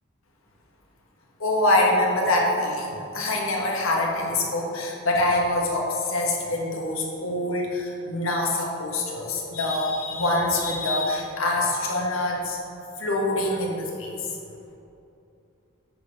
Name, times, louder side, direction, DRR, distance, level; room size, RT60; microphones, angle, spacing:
voice 1, 1.4-12.6 13.0-14.2, left 1 dB, 80° left, -1 dB, 1.5 m, -25 dB
9.3 x 4.3 x 5.3 m, 2.7 s
head